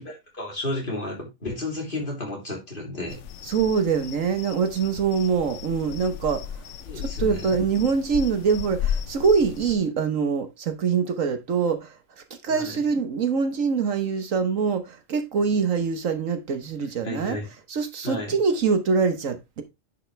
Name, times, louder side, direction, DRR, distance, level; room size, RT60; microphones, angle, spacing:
voice 1, 0.0-3.2 6.9-7.5 12.5-12.8 17.0-17.5 18.0-18.3, left 2 dB, 40° left, 3.7 m, -32 dB
sound 1, 3.1-9.8, left 9 dB, 65° left, 1.0 m, -34 dB
voice 2, 3.4-6.7 6.9-12.0 12.4-17.4 17.7-19.6, right 5 dB, 70° right, 1.5 m, -24 dB
9.9 x 5.6 x 3.3 m
omnidirectional pair, 1.4 m